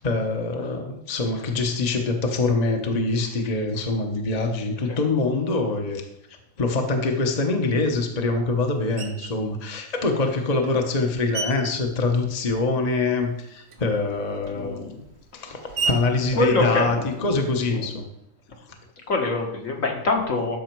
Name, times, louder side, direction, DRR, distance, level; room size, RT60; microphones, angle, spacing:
voice 1, 0.0-6.0 6.6-14.8 15.3-17.0 17.2-18.0, left 3 dB, 30° left, 3 dB, 1.0 m, -24 dB
Screech, 9.0-9.4 10.2-12.9 13.2-17.5, right 4 dB, 80° right, 1.7 m, -35 dB
voice 2, 14.5-15.0 15.9-17.4 17.7-17.9 19.1-20.6, left 3 dB, 60° left, 1 dB, 2.1 m, -26 dB
12.5 x 6.3 x 4.6 m, 0.84 s
omnidirectional pair, 1.6 m